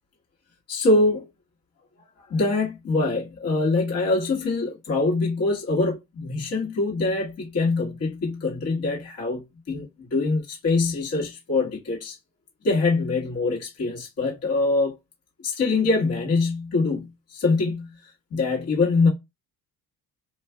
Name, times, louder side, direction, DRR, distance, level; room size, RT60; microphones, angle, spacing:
voice 1, 0.7-1.3 2.3-9.4 9.7-12.2 12.6-15.0 15.4-17.9 18.3-19.1, left 3 dB, 45° left, 1.4 m, -24 dB
2.5 x 2.3 x 3.3 m
cardioid pair, 125°, 34 cm